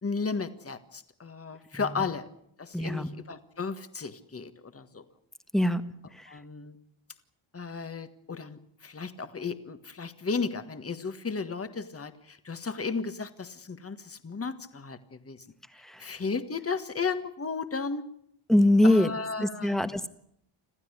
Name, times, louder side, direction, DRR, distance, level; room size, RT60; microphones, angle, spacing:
voice 1, 0.0-2.2 2.6-5.0 6.3-6.7 7.5-15.4 16.0-18.0 18.8-19.8, left 4 dB, 30° left, 10 dB, 1.6 m, -34 dB
voice 2, 2.7-3.1 5.5-5.8 6.2-6.3 15.8-16.1 18.5-19.1 19.4-20.1, left 1 dB, ahead, 10 dB, 1.4 m, -23 dB
26.5 x 15.0 x 9.8 m, 0.71 s
wide cardioid pair, 140°, 49 cm